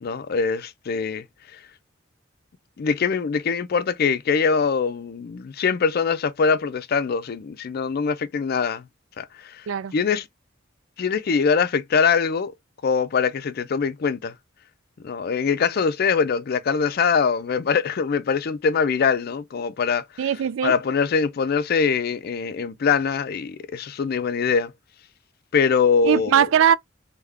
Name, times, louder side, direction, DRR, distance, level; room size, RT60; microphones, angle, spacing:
voice 1, 0.0-1.3 1.5-1.6 2.8-8.8 9.2-9.7 9.9-10.2 11.0-12.5 12.8-14.3 15.0-20.1 20.6-24.7 25.5-26.5, left 5 dB, 50° left, 0.4 m, -23 dB
voice 2, 20.2-20.7 26.0-26.7, right 8 dB, 75° right, 0.3 m, -20 dB
3.5 x 2.3 x 3.3 m
head